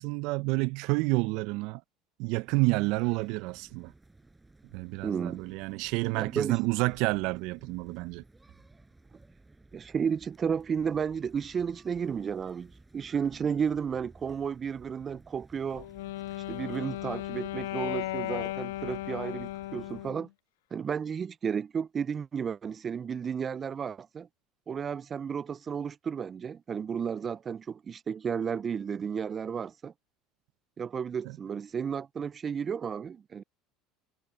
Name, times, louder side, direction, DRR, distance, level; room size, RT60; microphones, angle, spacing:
voice 1, 0.0-1.8 2.2-3.9 4.7-8.2, right 24 dB, 70° right, 0.7 m, -29 dB
sound 1, 2.5-20.1, right 2 dB, 15° right, 5.7 m, -56 dB
voice 2, 5.0-5.4 6.2-6.6 9.7-15.9 16.5-20.3 20.7-24.3 24.7-29.9 30.8-33.4, right 7 dB, 35° right, 0.4 m, -33 dB
Wind instrument woodwind instrument, 15.7-20.3, left 16 dB, 80° left, 1.6 m, -36 dB
hypercardioid pair, 80°, 0 cm